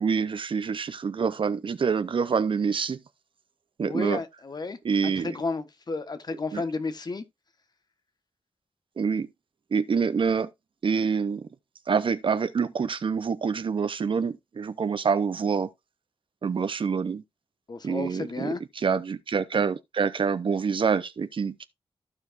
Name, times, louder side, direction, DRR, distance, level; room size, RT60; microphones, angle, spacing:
voice 1, 0.0-3.0 3.8-4.2 4.8-5.4 6.5-6.6 9.0-9.3 9.7-10.5 10.8-11.4 11.9-15.7 16.4-17.2 17.8-21.7, right 6 dB, 60° right, 0.7 m, -26 dB
voice 2, 3.8-4.8 5.0-7.2 17.7-18.6, left 3 dB, 45° left, 1.2 m, -32 dB
14.5 x 4.8 x 2.5 m
wide cardioid pair, 105°, 10 cm